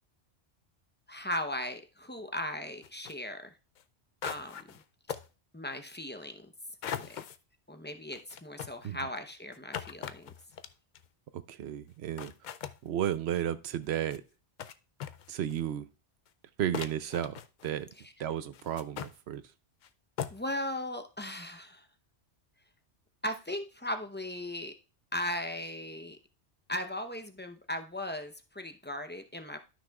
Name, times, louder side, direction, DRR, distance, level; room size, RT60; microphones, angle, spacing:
voice 1, 1.1-3.5 4.2-4.6 5.5-6.5 6.9-7.2 7.7-10.3 20.3-21.8 23.2-24.7 25.1-26.2 26.7-29.6, left 1 dB, 10° left, 7 dB, 0.6 m, -37 dB
sound 1, 2.8-3.1 3.8-3.9 4.2-4.8 5.1-5.3 6.8-7.4 8.1-11.1 11.9-12.0 12.2-12.8 13.8-14.2 14.6-14.7 15.0-15.6 16.3-16.4 16.7-17.8 18.5-19.2 19.8-19.9 20.2-20.5, left 8 dB, 60° left, 0.5 m, -40 dB
voice 2, 11.3-12.3 12.8-14.2 15.3-15.9 16.6-17.9 18.2-19.4, right 10 dB, 75° right, 13 dB, 0.8 m, -33 dB
12.5 x 6.0 x 2.3 m, 0.31 s
omnidirectional pair, 1.1 m